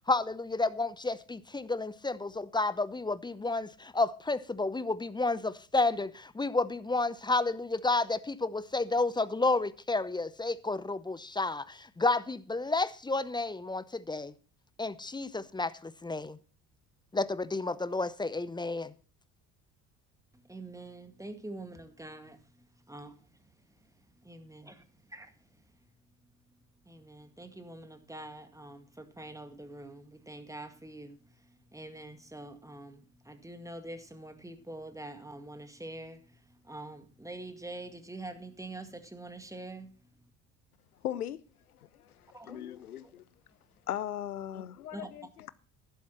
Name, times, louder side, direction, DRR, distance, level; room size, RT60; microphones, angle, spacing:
voice 1, 0.1-14.3 14.8-16.4 17.1-18.9, left 3 dB, 10° left, 0.7 m, -31 dB
voice 2, 20.3-22.4 22.9-24.7 25.1-25.9 26.2-40.3 42.3-42.6 43.0-43.1 44.9-45.1, right 2 dB, 5° right, 2.0 m, -46 dB
voice 3, 41.0-41.4 41.7-43.2 43.9-45.5, left 11 dB, 85° left, 0.7 m, -38 dB
11.5 x 11.5 x 4.3 m
figure-of-eight pair, 55°, 43 cm